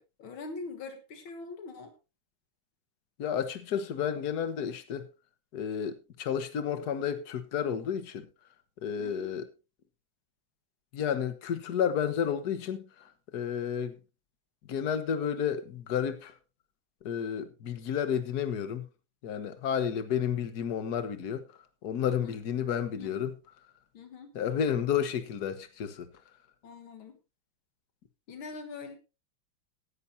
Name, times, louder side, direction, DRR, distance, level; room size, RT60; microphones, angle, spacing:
voice 1, 0.0-1.9 9.0-9.3 22.1-22.4 22.9-23.2 23.9-24.4 26.6-27.2 28.3-29.0, left 4 dB, 75° left, 2.3 m, -43 dB
voice 2, 3.2-5.1 5.5-8.3 8.8-9.5 10.9-12.8 13.3-14.0 14.7-16.3 17.0-18.9 19.2-21.4 21.8-23.3 24.4-26.1, left 8 dB, 55° left, 1.6 m, -31 dB
17.0 x 10.5 x 2.7 m
omnidirectional pair, 2.2 m